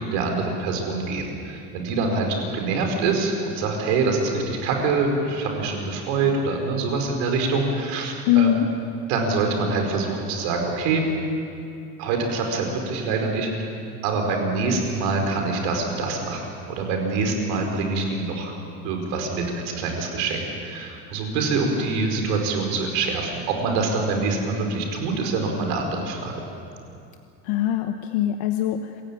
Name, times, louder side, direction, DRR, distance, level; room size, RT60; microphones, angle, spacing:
voice 1, 0.0-8.5 9.1-11.0 12.0-13.6 14.0-16.4 16.7-18.5 18.8-26.3, right 3 dB, 75° right, 2 dB, 4.9 m, -25 dB
voice 2, 8.3-8.7 27.4-29.0, left 12 dB, 80° left, 6 dB, 1.3 m, -22 dB
27.0 x 16.0 x 9.0 m, 2.6 s
cardioid pair, 165°, 33 cm